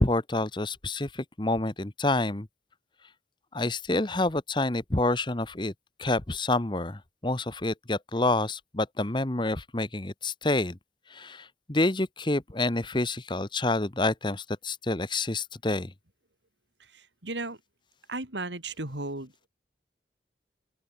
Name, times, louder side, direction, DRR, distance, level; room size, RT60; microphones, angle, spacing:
voice 1, 0.0-2.5 3.5-5.7 6.0-10.8 11.1-15.9, left 2 dB, 25° left, 1.1 m, -28 dB
voice 2, 16.8-17.6 18.1-19.5, right 2 dB, 80° right, 5.2 m, -36 dB
open air
head